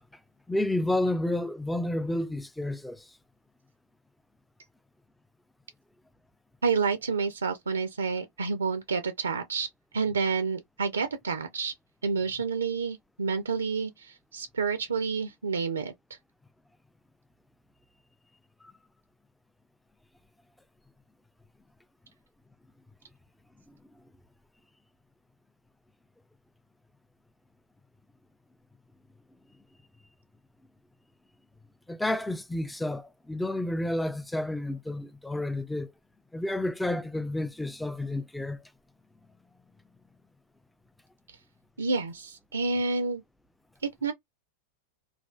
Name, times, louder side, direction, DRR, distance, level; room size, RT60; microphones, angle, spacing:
voice 1, 0.5-3.2 18.6-18.7 23.7-23.8 31.9-35.9 36.3-38.6, left 1 dB, 5° left, 0.3 m, -30 dB
voice 2, 6.6-9.7 9.9-11.7 12.0-15.9 41.3-41.4 41.8-43.2 44.0-44.1, right 5 dB, 70° right, 0.4 m, -29 dB
3.2 x 2.3 x 2.3 m
figure-of-eight pair, 90°, 0 cm